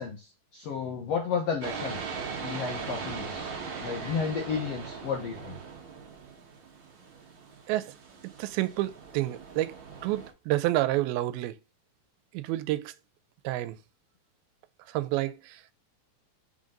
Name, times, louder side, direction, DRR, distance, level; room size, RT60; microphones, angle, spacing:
voice 1, 0.0-2.0 2.4-3.5 3.8-5.6, left 6 dB, 75° left, 1.5 m, -32 dB
sound 1, 1.6-10.3, right 5 dB, 60° right, 1.2 m, -40 dB
voice 2, 8.4-9.8 10.0-11.6 12.3-12.9 13.4-13.8 14.9-15.6, right 16 dB, 85° right, 2.4 m, -29 dB
5.6 x 3.8 x 5.1 m
omnidirectional pair, 4.2 m